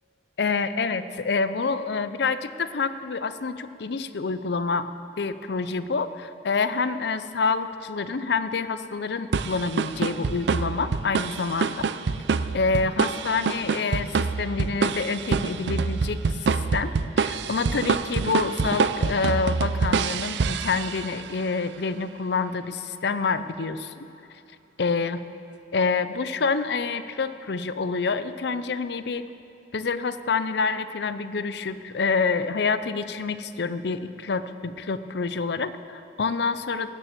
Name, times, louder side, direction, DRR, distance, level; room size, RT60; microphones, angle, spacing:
voice 1, 0.4-11.7 12.5-23.9 24.8-25.2 25.7-29.3 29.7-36.9, left 4 dB, 70° left, 12 dB, 0.6 m, -27 dB
sound 1, 9.3-21.3, right 5 dB, 70° right, 0.4 m, -26 dB
18.0 x 7.0 x 7.5 m, 2.6 s
head